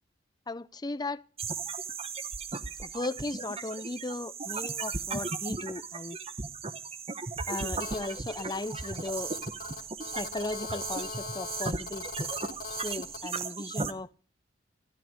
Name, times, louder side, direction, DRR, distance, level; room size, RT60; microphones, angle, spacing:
voice 1, 0.5-1.2 2.8-6.2 7.5-9.3 10.1-12.3 12.8-14.1, left 2 dB, 20° left, 0.6 m, -36 dB
sound 1, 1.4-13.9, right 4 dB, 35° right, 1.1 m, -36 dB
Telephone, 7.8-13.2, left 5 dB, 55° left, 3.2 m, -42 dB
13.5 x 13.0 x 6.5 m
head